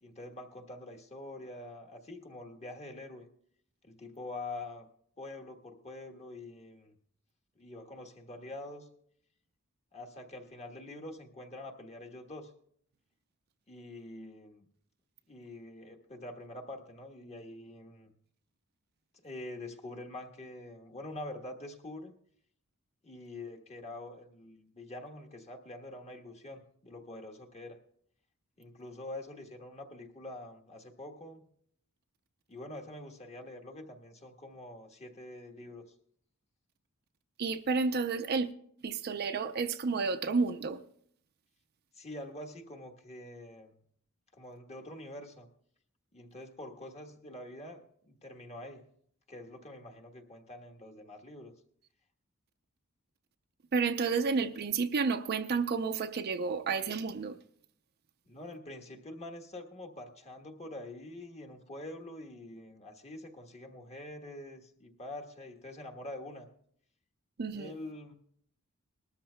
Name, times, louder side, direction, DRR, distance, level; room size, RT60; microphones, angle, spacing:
voice 1, 0.0-3.3 3.8-4.9 5.2-6.9 7.6-8.9 9.9-12.5 13.7-14.6 15.3-18.1 19.2-22.1 23.0-27.8 28.6-31.4 32.5-35.8 41.9-43.7 44.3-45.5 46.1-48.8 49.3-51.5 58.3-66.5 67.5-68.1, left 2 dB, 30° left, 1.2 m, -45 dB
voice 2, 37.4-38.5 38.8-40.8 53.7-57.4 67.4-67.7, right 4 dB, 50° right, 0.5 m, -31 dB
20.0 x 13.0 x 2.2 m
head